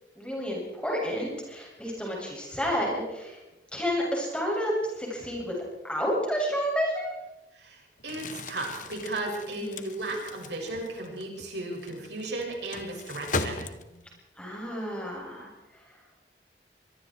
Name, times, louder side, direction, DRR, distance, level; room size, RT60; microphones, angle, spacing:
voice 1, 0.2-3.4 3.7-5.6 5.8-7.1 9.6-9.8 14.4-16.0, equal, 5° left, -2 dB, 7.2 m, -30 dB
voice 2, 7.5-13.6, right 2 dB, 75° right, 0 dB, 6.4 m, -35 dB
Crumpling crinkling, 8.0-14.2, left 3 dB, 45° left, 1.3 m, -38 dB
25.0 x 23.0 x 4.6 m, 1.0 s
head